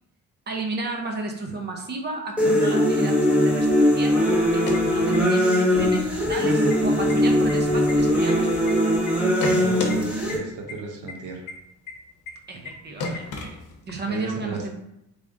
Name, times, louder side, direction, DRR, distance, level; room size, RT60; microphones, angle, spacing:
voice 1, 0.5-8.8 12.5-13.6 13.8-14.7, right 3 dB, 35° right, 2 dB, 0.6 m, -33 dB
sound 1, 2.4-10.4, equal, 5° right, 0.8 m, -20 dB
sound 2, 4.5-5.6 5.9-6.0 6.3-6.8 7.1-8.7 9.1-10.0 10.3-10.4 10.7-10.8 11.1-11.2 11.5-11.6 11.9-12.0 12.3-12.4 12.7-12.8 13.0-14.0, left 3 dB, 80° left, 0.8 m, -32 dB
voice 2, 9.5-11.5 14.1-14.7, right 4 dB, 85° right, 2 dB, 0.8 m, -35 dB
3.4 x 2.5 x 3.6 m, 0.83 s
cardioid pair, 120°, 30 cm